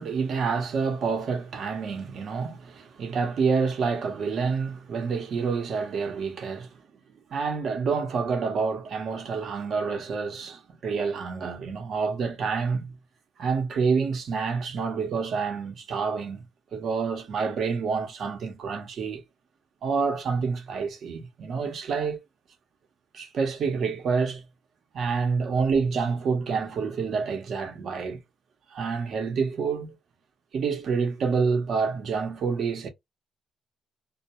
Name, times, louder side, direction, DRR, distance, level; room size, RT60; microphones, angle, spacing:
voice 1, 0.0-6.7 7.3-12.9 13.4-16.5 16.7-19.2 19.8-22.2 23.1-24.4 24.9-28.2 28.7-30.0 30.5-32.9, right 5 dB, 60° right, 0.9 m, -28 dB
2.2 x 2.2 x 2.8 m
cardioid pair, 90°, 0 cm